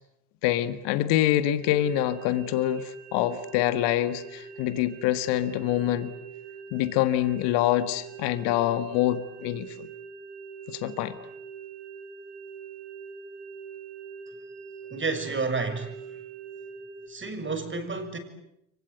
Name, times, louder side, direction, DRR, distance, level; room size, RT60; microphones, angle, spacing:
voice 1, 0.4-6.1 6.7-9.9 10.7-11.2, left 13 dB, 65° left, 1.8 m, -25 dB
sound 1, 1.6-17.1, right 6 dB, 80° right, 4.4 m, -43 dB
voice 2, 14.9-16.2 17.1-18.2, right 4 dB, 25° right, 6.8 m, -31 dB
30.0 x 24.0 x 8.3 m
hypercardioid pair, 75°, 45 cm